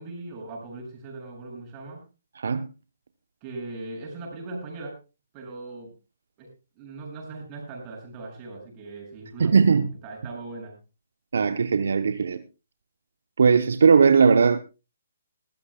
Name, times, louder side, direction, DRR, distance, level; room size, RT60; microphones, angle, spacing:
voice 1, 0.0-2.0 3.4-5.0 5.3-5.9 6.4-6.5 6.8-10.8, right 3 dB, 30° right, 7.7 m, -39 dB
voice 2, 2.4-2.7 9.4-9.9 11.3-12.4 13.4-14.6, right 5 dB, 65° right, 0.9 m, -19 dB
21.0 x 14.5 x 2.3 m
figure-of-eight pair, 140°, 0 cm